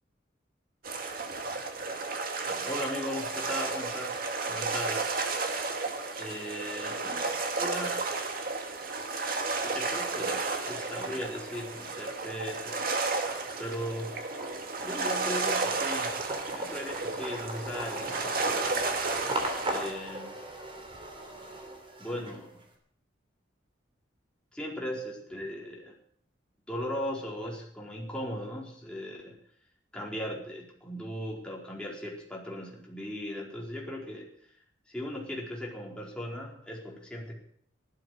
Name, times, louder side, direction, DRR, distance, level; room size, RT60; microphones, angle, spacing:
sound 1, 0.8-19.9, right 3 dB, 55° right, 2.2 m, -33 dB
voice 1, 2.5-4.2 4.5-5.1 6.2-8.0 9.6-12.9 13.6-14.1 14.8-16.2 16.5-18.7 19.6-20.4 22.0-22.6 24.5-25.9 26.7-29.4 29.9-34.3 34.9-37.4, equal, 5° left, -3 dB, 4.6 m, -38 dB
sound 2, 8.1-8.7 9.1-22.6, right 1 dB, 30° right, 3.4 m, -40 dB
16.0 x 12.5 x 6.6 m, 0.64 s
head